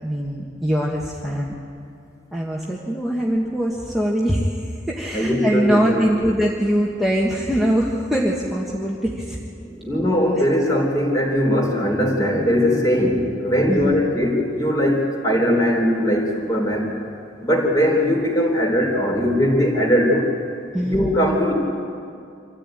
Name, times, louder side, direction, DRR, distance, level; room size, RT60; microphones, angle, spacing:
voice 1, 0.0-1.5 2.3-9.4 13.7-14.0 20.7-21.1, equal, ahead, -5 dB, 1.6 m, -22 dB
voice 2, 5.1-6.3 9.6-16.9 17.4-20.3 20.8-21.5, equal, 20° left, 1 dB, 3.8 m, -20 dB
25.5 x 14.5 x 9.1 m, 2.4 s
head